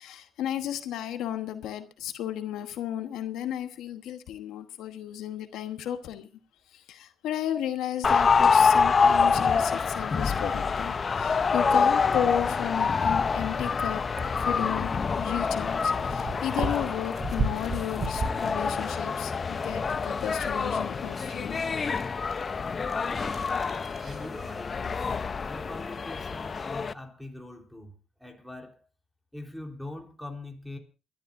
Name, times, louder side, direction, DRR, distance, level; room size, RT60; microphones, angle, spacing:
voice 1, 0.0-6.3 6.7-14.0 14.3-21.6, left 11 dB, 85° left, 1.2 m, -34 dB
sound 1, 8.0-26.9, left 5 dB, 40° left, 0.6 m, -26 dB
sound 2, 11.4-26.8, right 3 dB, 45° right, 3.7 m, -40 dB
voice 2, 23.1-23.6 24.0-25.1 25.5-28.9 29.3-30.8, left 2 dB, ahead, 3.6 m, -42 dB
29.0 x 12.5 x 2.6 m
cardioid pair, 90°, 0 cm